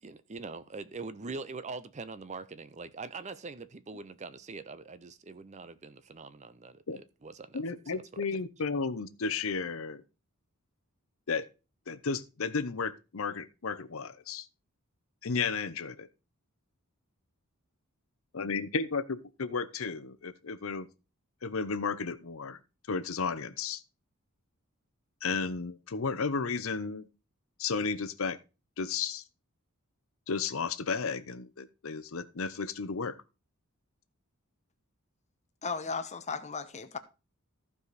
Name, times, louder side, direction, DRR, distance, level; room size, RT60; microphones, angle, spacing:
voice 1, 0.0-7.6 7.9-8.3, right 4 dB, 30° right, 0.5 m, -43 dB
voice 2, 7.5-10.0 11.3-11.4 11.9-14.5 15.2-16.1 18.3-20.9 21.4-22.6 22.9-23.8 25.2-27.1 27.6-28.4 28.8-29.2 30.3-33.1, left 5 dB, 65° left, 0.7 m, -33 dB
voice 3, 35.6-37.0, left 5 dB, 30° left, 0.9 m, -35 dB
14.5 x 4.9 x 4.1 m
head